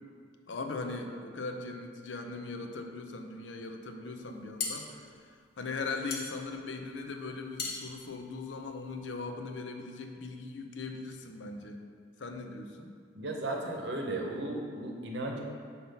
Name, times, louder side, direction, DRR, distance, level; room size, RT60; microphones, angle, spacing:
voice 1, 0.5-11.8 12.2-13.0, left 3 dB, 80° left, 4 dB, 0.6 m, -39 dB
sound 1, 4.2-9.2, left 4 dB, 60° left, 1.0 m, -40 dB
voice 2, 13.1-15.4, right 2 dB, 65° right, 1 dB, 0.8 m, -35 dB
5.3 x 4.1 x 5.7 m, 2.1 s
head